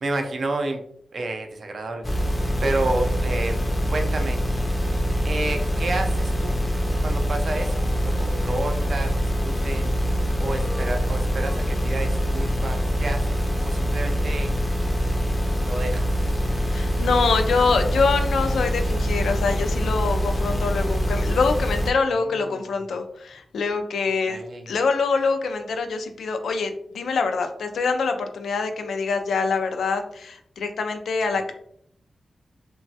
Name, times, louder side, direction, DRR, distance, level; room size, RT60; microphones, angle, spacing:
voice 1, 0.0-0.8 1.1-2.3 2.6-4.4 5.2-6.6 7.0-9.9 10.4-13.3 13.6-14.5 15.6-16.3 22.5-22.6 24.3-24.7, right 2 dB, 55° right, 4 dB, 0.5 m, -30 dB
sound 1, 2.0-21.9, equal, 20° left, 0.5 m, -24 dB
Male singing, 7.6-10.0 10.3-12.5, equal, 65° left, 0.8 m, -44 dB
voice 2, 16.7-24.4 24.7-31.5, left 4 dB, 90° left, 6 dB, 0.3 m, -25 dB
3.0 x 2.2 x 2.7 m, 0.67 s
wide cardioid pair, 100°, 0 cm